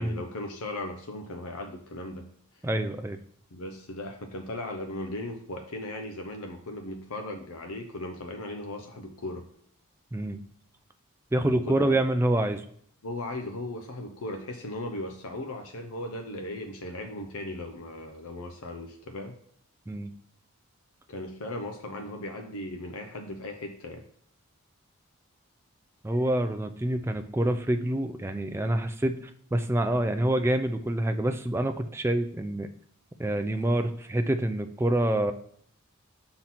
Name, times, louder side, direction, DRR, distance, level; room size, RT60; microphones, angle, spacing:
voice 1, 0.0-2.3 3.5-9.4 11.4-12.0 13.0-19.3 21.1-24.0, left 1 dB, 85° left, 4 dB, 0.7 m, -37 dB
voice 2, 2.6-3.2 10.1-10.4 11.3-12.6 19.9-20.1 26.0-32.7 33.2-35.3, right 1 dB, 10° right, 7 dB, 0.4 m, -27 dB
5.8 x 3.8 x 5.8 m, 0.65 s
head